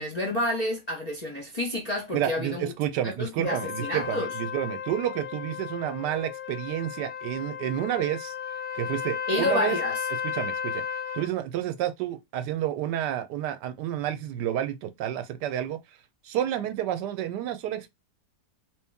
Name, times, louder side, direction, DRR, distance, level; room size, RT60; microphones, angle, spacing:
voice 1, 0.0-2.7 3.0-4.3 9.3-10.0, left 1 dB, 35° left, 0.6 m, -29 dB
voice 2, 2.1-8.3 8.7-9.8 10.3-10.8 11.1-15.8 16.2-17.9, right 11 dB, 80° right, 1.2 m, -30 dB
Trumpet, 3.5-11.3, left 7 dB, 70° left, 0.9 m, -34 dB
3.1 x 2.9 x 3.4 m
omnidirectional pair, 1.8 m